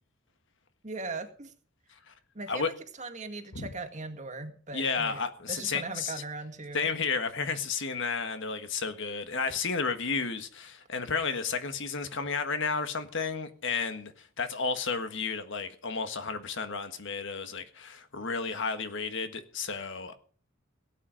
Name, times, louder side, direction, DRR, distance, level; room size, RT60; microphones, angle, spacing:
voice 1, 0.8-1.5 2.3-5.2 5.5-6.9, right 3 dB, 35° right, 1.9 m, -39 dB
voice 2, 4.7-6.1 6.7-20.2, left 5 dB, 65° left, 1.6 m, -32 dB
17.5 x 9.1 x 5.2 m
head